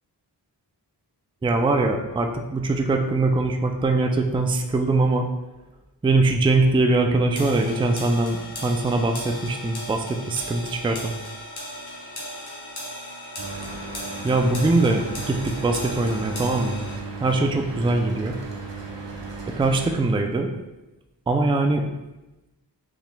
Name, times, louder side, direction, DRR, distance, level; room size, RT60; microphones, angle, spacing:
voice 1, 1.4-5.3 6.0-11.1 14.2-16.8 17.2-18.4 19.6-20.5 21.3-21.9, right 2 dB, 15° right, 4 dB, 0.4 m, -22 dB
sound 1, 7.4-17.0, equal, 65° left, 1.3 m, -37 dB
Mechanical fan, 13.4-19.9, right 3 dB, 80° right, 0.8 m, -36 dB
5.7 x 3.1 x 2.2 m, 1.0 s
cardioid pair, 50°, 43 cm